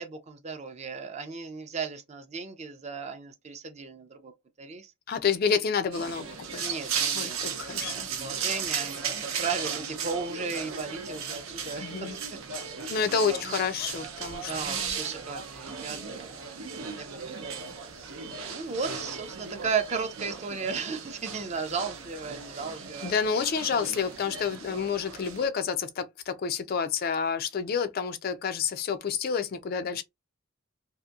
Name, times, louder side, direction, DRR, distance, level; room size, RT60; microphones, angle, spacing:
voice 1, 0.0-4.3 4.6-4.9 6.6-12.2 12.5-12.6 13.3-13.6 14.5-17.7 18.5-23.1, right 5 dB, 30° right, 0.5 m, -35 dB
voice 2, 5.1-6.3 6.5-6.7 7.2-8.1 11.8-12.1 12.9-14.9 23.0-30.0, left 6 dB, 45° left, 0.3 m, -29 dB
sound 1, 5.9-25.5, right 6 dB, 80° right, 0.6 m, -36 dB
2.8 x 2.5 x 2.3 m
head